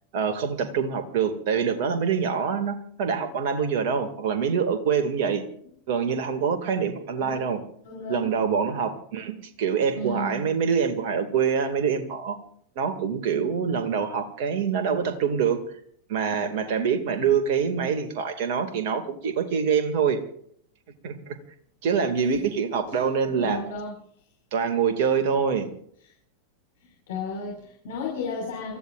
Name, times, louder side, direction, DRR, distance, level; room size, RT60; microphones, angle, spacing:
voice 1, 0.1-5.4 5.9-7.6 8.1-12.4 12.8-15.6 16.1-20.2 21.0-21.4 21.8-23.6 24.5-25.7, right 6 dB, 50° right, 7 dB, 2.4 m, -25 dB
voice 2, 7.9-8.3 9.9-10.4 23.3-24.0 27.1-28.8, left 3 dB, 55° left, -2 dB, 5.6 m, -33 dB
29.5 x 14.5 x 2.6 m, 0.64 s
figure-of-eight pair, 90°, 0 cm